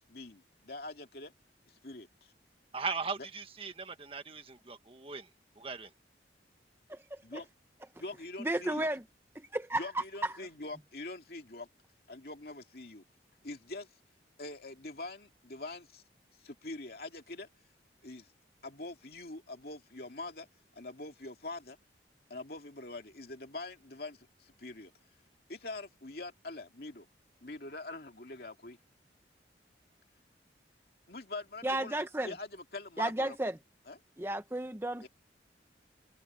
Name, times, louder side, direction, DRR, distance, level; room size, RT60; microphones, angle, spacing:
voice 1, 0.1-1.3 1.7-2.3 3.2-3.3 7.2-7.5 8.0-8.9 9.7-11.7 12.1-13.0 13.4-13.9 14.4-16.0 16.4-17.5 18.0-18.3 18.6-20.5 20.7-21.8 22.3-24.9 25.5-27.1 27.4-28.8 31.1-33.4 33.9-34.0 35.0-35.1, left 2 dB, 55° left, 2.6 m, -44 dB
voice 2, 2.7-5.3 5.6-5.9, right 4 dB, 30° right, 1.6 m, -38 dB
voice 3, 6.9-7.4 8.4-9.0 9.3-10.3 31.6-32.3 33.0-33.6 34.2-35.1, right 1 dB, 15° right, 0.7 m, -33 dB
head